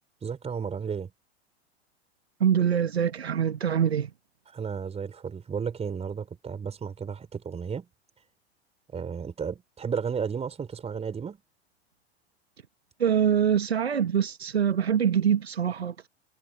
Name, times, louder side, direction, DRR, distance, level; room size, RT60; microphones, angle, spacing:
voice 1, 0.2-1.1 4.5-7.9 8.9-11.4, right 6 dB, 20° right, 3.9 m, -33 dB
voice 2, 2.4-4.1 13.0-16.1, right 8 dB, 80° right, 1.4 m, -24 dB
figure-of-eight pair, 90°, 32 cm